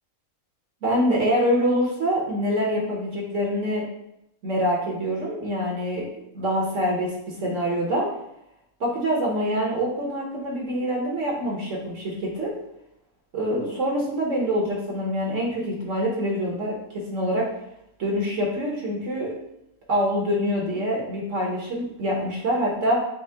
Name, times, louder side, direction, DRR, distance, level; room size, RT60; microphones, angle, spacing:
voice 1, 0.8-3.8 4.4-8.1 8.8-12.5 13.3-17.5 18.0-19.4 19.9-23.0, equal, 60° right, -2 dB, 1.2 m, -25 dB
6.2 x 2.1 x 3.4 m, 0.82 s
omnidirectional pair, 1.5 m